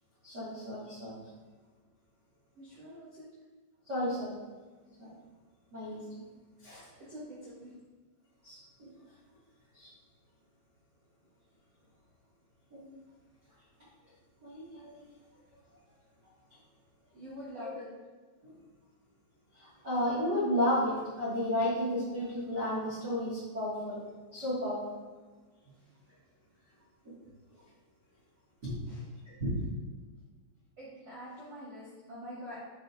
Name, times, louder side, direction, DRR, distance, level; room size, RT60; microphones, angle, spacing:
voice 1, 0.2-1.1 3.9-4.3 5.0-5.1 5.7-6.0 6.6-6.9 8.4-8.9 9.7-9.9 12.7-12.8 14.4-15.0 17.6-17.7 18.4-18.5 19.5-24.0 24.3-24.8 27.0-27.1 28.6-28.7 29.2-29.6, left 1 dB, 30° right, -10 dB, 2.1 m, -33 dB
voice 2, 2.5-3.3 7.0-7.7 17.1-17.9 19.7-19.8 28.9-29.0 30.8-32.6, equal, 65° right, -8 dB, 1.6 m, -45 dB
9.2 x 4.4 x 4.7 m, 1.3 s
omnidirectional pair, 5.3 m